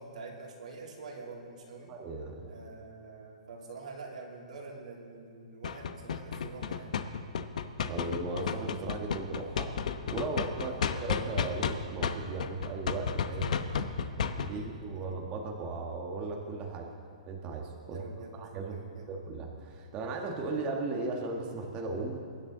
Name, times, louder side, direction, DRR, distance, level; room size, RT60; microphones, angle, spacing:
voice 1, 0.0-1.9 2.5-6.9 10.6-10.8 13.3-15.1 17.8-18.4 18.6-19.1, right 3 dB, 80° right, -1 dB, 3.1 m, -46 dB
voice 2, 1.9-2.5 7.9-13.4 14.4-16.9 17.2-18.0 18.4-18.8 19.1-22.2, right 3 dB, 25° right, 0 dB, 1.4 m, -37 dB
sound 1, 5.6-11.7 12.0-14.5, left 7 dB, 70° left, 0.9 m, -31 dB
23.0 x 10.5 x 3.9 m, 2.3 s
hypercardioid pair, 150°, 4 cm